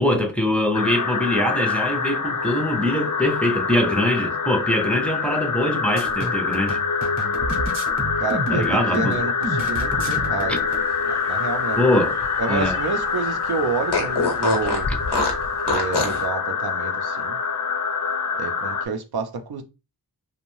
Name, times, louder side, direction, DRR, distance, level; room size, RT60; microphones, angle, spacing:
voice 1, 0.0-6.8 8.5-9.2 10.5-10.6 11.8-12.2 12.5-12.8 14.9-15.0, left 1 dB, 5° left, 0.5 m, -23 dB
sound 1, 0.7-18.9, left 5 dB, 55° left, 0.6 m, -25 dB
sound 2, 6.0-10.8, right 1 dB, 45° right, 0.8 m, -30 dB
voice 2, 8.2-10.7 11.1-11.8 12.4-14.9 15.7-17.4 18.4-19.6, right 4 dB, 70° right, 0.5 m, -29 dB
Fart, 10.9-13.0 13.3-13.4 13.9-16.2, left 3 dB, 90° left, 0.8 m, -26 dB
2.6 x 2.1 x 3.0 m
wide cardioid pair, 60°, 39 cm